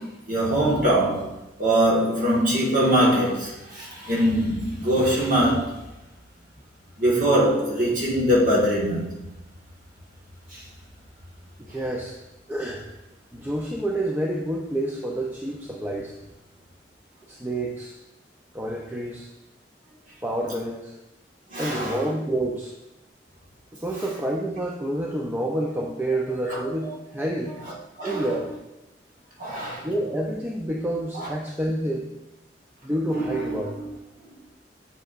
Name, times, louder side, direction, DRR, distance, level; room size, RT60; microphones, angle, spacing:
voice 1, 0.0-1.3 1.6-5.8 7.0-9.2 10.5-10.6 21.5-22.0 26.5-26.9 28.0-28.3 29.4-29.9 31.1-31.3 33.1-33.7, right 1 dB, 50° right, 1.6 m, -23 dB
voice 2, 11.6-12.2 12.5-12.9 13.3-16.1 17.3-18.0 18.5-19.3 20.2-20.9 21.6-22.7 23.7-27.5 28.0-28.5 29.8-32.1 32.8-33.8, right 1 dB, 10° right, 0.5 m, -28 dB
7.5 x 6.9 x 2.5 m
head